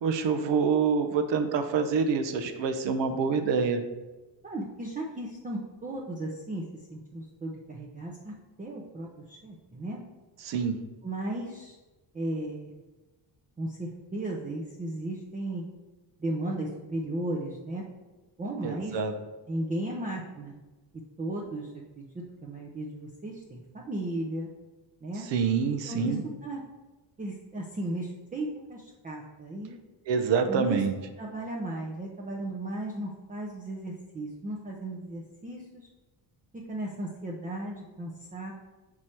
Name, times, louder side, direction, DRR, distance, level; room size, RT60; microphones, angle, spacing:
voice 1, 0.0-3.8 10.4-10.8 18.6-19.1 25.2-26.2 30.1-30.9, right 5 dB, 65° right, 7 dB, 0.7 m, -26 dB
voice 2, 4.4-10.0 11.0-11.7 12.1-12.7 13.6-15.7 16.2-17.8 18.4-19.0 19.5-20.6 21.2-24.5 25.0-25.3 25.8-26.2 26.4-26.6 27.2-29.8 30.5-30.8 31.2-35.9 36.7-38.5, right 1 dB, 20° right, -3 dB, 0.6 m, -35 dB
6.2 x 4.8 x 4.3 m, 1.2 s
cardioid pair, 145°, 47 cm